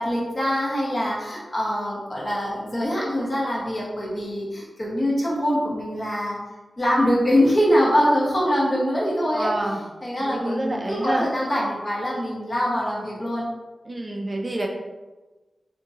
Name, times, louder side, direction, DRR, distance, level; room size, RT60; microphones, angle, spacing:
voice 1, 0.0-6.4 6.8-9.5 10.0-13.4, equal, 40° left, -6 dB, 1.1 m, -23 dB
voice 2, 9.3-9.8 10.2-11.3 13.9-14.7, right 1 dB, 35° right, 0 dB, 0.4 m, -27 dB
2.8 x 2.6 x 3.6 m, 1.2 s
wide cardioid pair, 80°, 0 cm